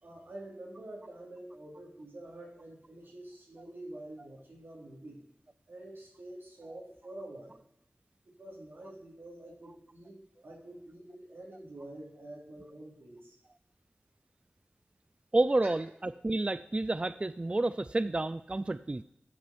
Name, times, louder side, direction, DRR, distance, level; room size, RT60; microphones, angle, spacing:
voice 1, 0.0-5.2 5.7-7.6 8.3-13.4, right 1 dB, 85° right, -2 dB, 3.1 m, -47 dB
voice 2, 15.3-19.0, right 2 dB, 30° right, 14 dB, 0.3 m, -30 dB
12.5 x 6.3 x 4.3 m, 0.80 s
wide cardioid pair, 55°, 4 cm